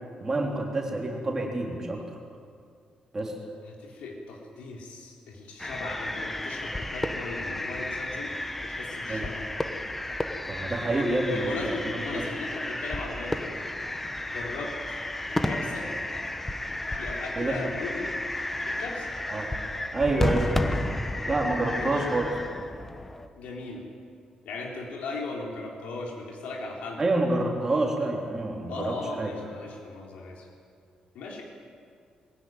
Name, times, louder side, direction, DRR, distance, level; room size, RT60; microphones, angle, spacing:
voice 1, 0.2-2.0 3.1-3.3 9.1-9.2 10.5-12.2 17.4-17.6 19.3-19.5 19.9-20.5 21.3-22.3 27.0-29.3, right 2 dB, 20° right, 0 dB, 3.4 m, -28 dB
voice 2, 3.7-8.3 8.6-9.5 10.9-13.7 14.3-15.0 15.3-15.9 16.9-18.1 18.7-19.2 21.8-22.2 23.3-23.8 24.5-27.0 28.7-30.5 31.1-31.4, left 3 dB, 85° left, -1 dB, 3.7 m, -37 dB
sound 1, 5.6-23.3, left 1 dB, 10° left, 1.0 m, -32 dB
22.0 x 16.5 x 9.4 m, 2.2 s
cardioid pair, 165°, 2 cm